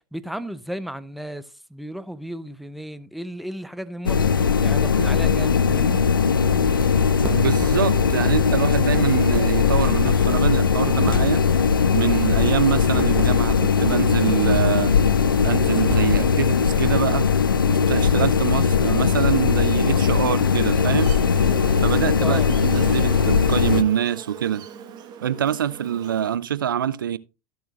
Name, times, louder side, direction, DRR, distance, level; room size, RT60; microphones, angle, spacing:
voice 1, 0.1-1.4 1.7-6.1 22.2-22.5, equal, ahead, 0.6 m, -34 dB
sound 1, 4.1-23.8, left 6 dB, 85° left, 0.5 m, -19 dB
sound 2, 6.6-16.3, right 1 dB, 15° right, 2.0 m, -35 dB
voice 2, 7.3-11.4 11.9-14.9 15.4-17.3 17.7-21.2 21.8-24.7 25.2-27.2, right 9 dB, 80° right, 0.4 m, -25 dB
Buzz, 20.7-26.4, right 8 dB, 40° right, 1.4 m, -39 dB
13.5 x 7.6 x 2.4 m
figure-of-eight pair, 85°, 11 cm